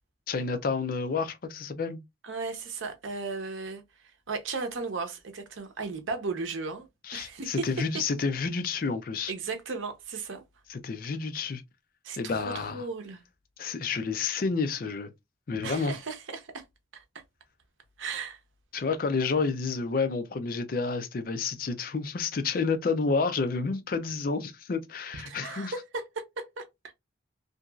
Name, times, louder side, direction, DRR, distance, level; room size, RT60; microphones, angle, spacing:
voice 1, 0.3-2.0 7.1-9.3 10.7-11.6 12.2-12.8 13.6-15.1 15.5-15.9 18.7-25.7, left 4 dB, 45° left, 0.4 m, -30 dB
voice 2, 2.2-3.8 4.3-6.9 7.1-7.7 7.9-8.0 9.3-10.4 12.0-13.2 15.6-16.6 16.9-17.0 18.0-18.4 25.1-26.7, right 4 dB, 85° right, 0.7 m, -35 dB
2.8 x 2.6 x 2.3 m
head